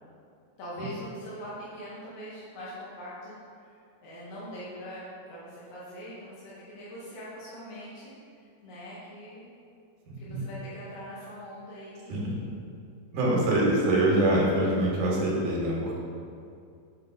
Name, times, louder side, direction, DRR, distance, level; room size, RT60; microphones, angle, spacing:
voice 1, 0.6-9.5 10.2-12.5, equal, 65° left, -9 dB, 1.8 m, -43 dB
voice 2, 10.1-10.4 12.1-12.4 13.1-16.0, right 1 dB, 75° right, -4 dB, 2.6 m, -25 dB
6.8 x 4.4 x 3.9 m, 2.4 s
omnidirectional pair, 3.8 m